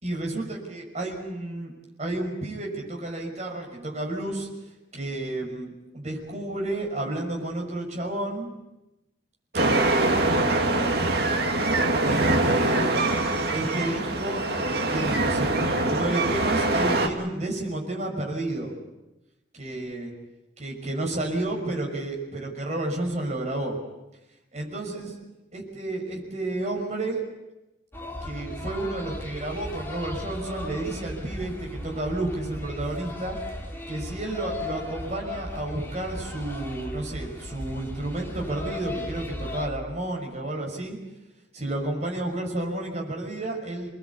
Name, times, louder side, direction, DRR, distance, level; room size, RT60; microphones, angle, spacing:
voice 1, 0.0-1.7 2.0-8.5 9.5-11.0 11.9-13.1 13.5-18.7 19.5-20.1 20.6-23.8 24.5-25.1 25.5-27.2 28.2-33.4 33.9-41.0 41.5-43.9, right 2 dB, 35° right, 1 dB, 5.9 m, -31 dB
sound 1, 9.5-17.1, right 2 dB, 55° right, 2.5 m, -24 dB
sound 2, 27.9-39.7, left 1 dB, 10° left, 3.3 m, -37 dB
25.5 x 20.5 x 8.6 m, 0.97 s
head